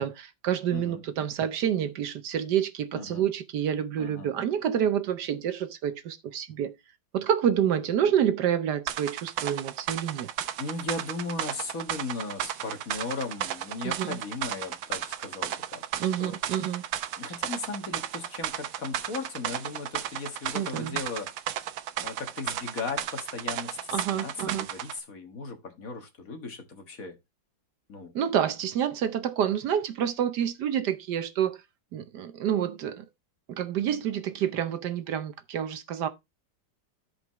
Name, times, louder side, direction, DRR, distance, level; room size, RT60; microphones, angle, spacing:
voice 1, 0.0-6.7 7.1-10.3 13.8-14.2 16.0-16.8 20.5-21.0 23.9-24.7 28.1-31.6 31.9-33.0 33.5-36.1, right 9 dB, 70° right, 1.3 m, -28 dB
voice 2, 0.7-1.0 2.9-3.3 4.0-4.3 10.6-16.4 17.2-21.3 22.0-27.2 27.9-28.1, left 3 dB, 50° left, 1.8 m, -37 dB
sound 1, 8.9-25.0, right 11 dB, 85° right, 1.5 m, -34 dB
15.0 x 5.1 x 3.0 m
omnidirectional pair, 2.0 m